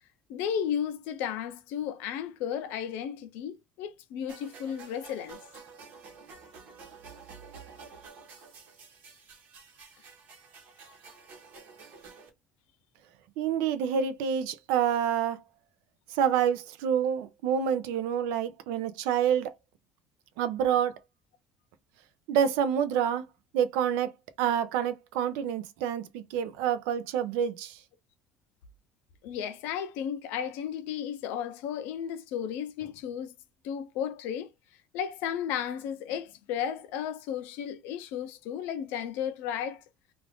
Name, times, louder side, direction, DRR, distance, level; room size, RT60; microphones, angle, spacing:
voice 1, 0.3-5.4 29.2-33.3 33.6-34.5 34.9-39.8, left 9 dB, 75° left, 0.6 m, -34 dB
sound 1, 4.3-12.3, right 5 dB, 55° right, 1.0 m, -50 dB
voice 2, 13.4-15.4 16.1-19.5 20.4-20.9 22.3-23.2 23.5-24.1 24.4-27.8, right 8 dB, 90° right, 0.5 m, -27 dB
2.5 x 2.4 x 3.4 m
cardioid pair, 150°, 3 cm